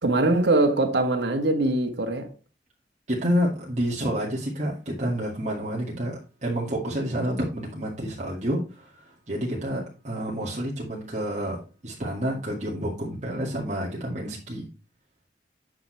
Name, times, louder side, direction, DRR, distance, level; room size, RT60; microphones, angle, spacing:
voice 1, 0.0-2.3, right 2 dB, 75° right, 1.3 m, -22 dB
voice 2, 3.1-9.0 9.3-14.7, equal, 40° right, 2.2 m, -29 dB
8.9 x 6.0 x 3.3 m
head